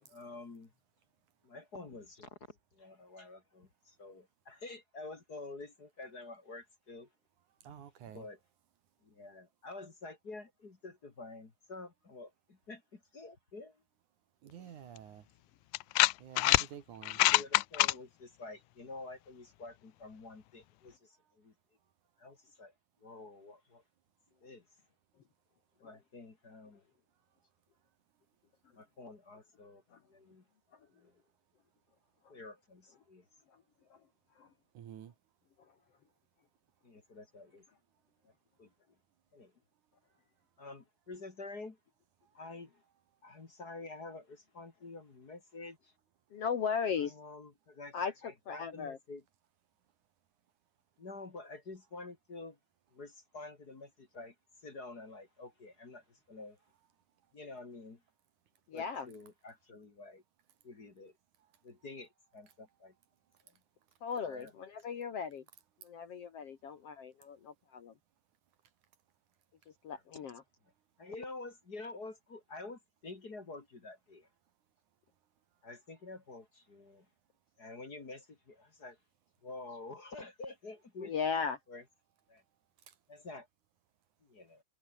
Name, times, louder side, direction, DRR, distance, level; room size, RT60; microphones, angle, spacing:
voice 1, 0.1-0.7 1.4-7.1 8.1-8.4 9.0-13.8 17.0-21.5 22.2-22.7 23.0-23.8 24.4-24.6 25.8-26.8 28.7-29.8 30.1-30.4 30.9-31.1 32.3-33.2 36.8-37.6 38.2-38.3 38.6-38.7 39.3-39.5 40.6-41.8 42.3-42.7 43.2-45.9 47.2-47.9 48.2-49.2 51.0-52.6 52.9-54.3 54.6-56.6 57.3-58.0 58.7-60.2 60.6-61.1 61.6-62.9 64.2-64.5 71.0-74.3 75.6-77.1 77.6-79.0 79.4-81.1 81.7-81.8 82.3-82.4 83.1-83.5 84.2-84.6, left 3 dB, 30° left, 2.6 m, -48 dB
voice 2, 7.6-8.3 14.4-15.2 16.2-17.2 34.7-35.1 82.9-83.0, right 9 dB, 65° right, 3.0 m, -49 dB
sound 1, 15.0-15.1 15.7-16.7 17.0-17.9, left 20 dB, 80° left, 2.0 m, -25 dB
voice 3, 46.3-47.2 47.9-49.0 58.7-59.1 64.0-65.5 65.8-67.9 69.8-70.4 81.0-81.6, left 6 dB, 55° left, 2.0 m, -37 dB
omnidirectional pair, 3.9 m